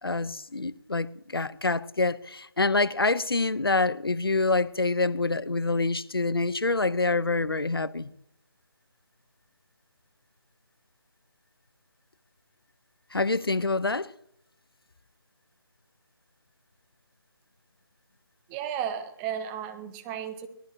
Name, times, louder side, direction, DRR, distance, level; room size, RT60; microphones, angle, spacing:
voice 1, 0.0-8.1 13.1-14.1, left 3 dB, 70° left, 0.9 m, -26 dB
voice 2, 18.5-20.5, right 9 dB, 10° right, 1.2 m, -34 dB
22.5 x 16.5 x 2.9 m
figure-of-eight pair, 155°, 13 cm